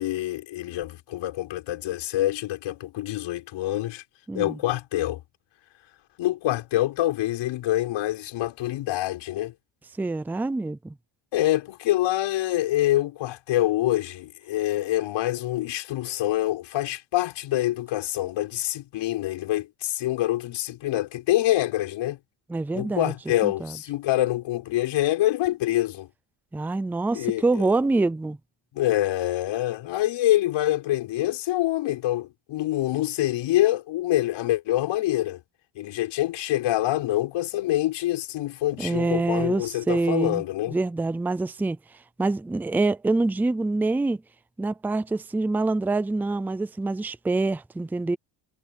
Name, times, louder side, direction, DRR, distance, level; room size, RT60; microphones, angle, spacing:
voice 1, 0.0-4.0 4.3-5.2 6.2-9.5 11.3-22.2 22.7-26.1 27.1-27.7 28.7-35.4 35.7-40.8, left 15 dB, 90° left, 6.8 m, -26 dB
voice 2, 4.3-4.6 10.0-10.9 22.5-23.1 23.4-23.8 26.5-28.4 38.8-41.8 42.2-44.2 44.6-48.2, right 3 dB, 5° right, 0.4 m, -26 dB
cardioid pair, 175°, 45 cm